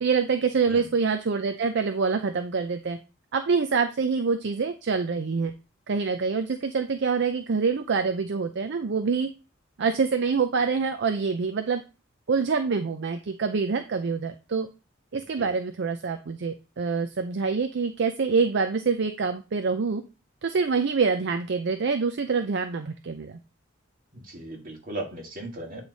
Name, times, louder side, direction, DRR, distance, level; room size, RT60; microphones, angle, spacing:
voice 1, 0.0-3.0 3.3-5.5 5.9-9.3 9.8-11.8 12.3-14.7 15.1-20.0 20.4-23.4, right 5 dB, 60° right, 7 dB, 0.5 m, -26 dB
voice 2, 0.7-1.0 15.4-15.5 24.1-25.8, right 1 dB, 45° right, 1 dB, 1.8 m, -37 dB
8.9 x 3.2 x 4.0 m, 0.31 s
head